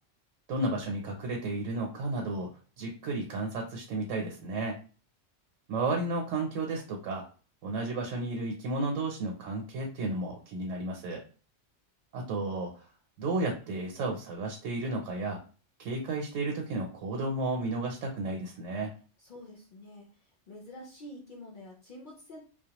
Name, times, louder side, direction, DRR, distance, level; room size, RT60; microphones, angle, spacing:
voice 1, 0.5-2.5 2.8-4.7 5.7-7.2 7.6-11.2 12.1-12.8 13.2-15.4 15.8-18.9, right 2 dB, 80° right, 1 dB, 0.9 m, -33 dB
voice 2, 19.2-20.1 20.5-22.4, left 1 dB, 55° left, -3 dB, 0.6 m, -47 dB
2.2 x 2.1 x 2.8 m, 0.38 s
omnidirectional pair, 1.3 m